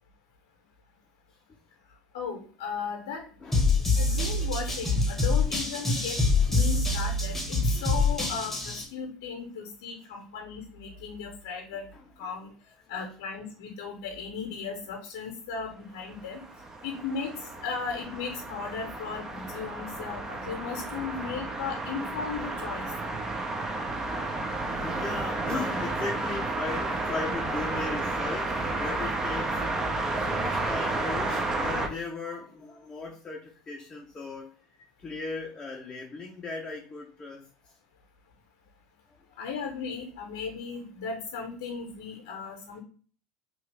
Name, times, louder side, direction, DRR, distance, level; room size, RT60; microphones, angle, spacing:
voice 1, 2.1-3.2 3.9-6.2 6.5-11.9 12.2-12.5 12.9-16.4 16.8-17.3 17.6-22.9 39.4-42.8, left 5 dB, 75° left, 0.7 m, -36 dB
voice 2, 3.4-3.8 11.9-12.1 24.7-29.6 30.3-34.5 35.0-37.5, left 3 dB, 25° left, 0.6 m, -37 dB
sound 1, 3.5-8.8, left 3 dB, 10° left, 1.0 m, -25 dB
sound 2, 16.1-31.9, right 2 dB, 20° right, 0.6 m, -32 dB
3.0 x 2.3 x 3.3 m
hypercardioid pair, 85°, 2 cm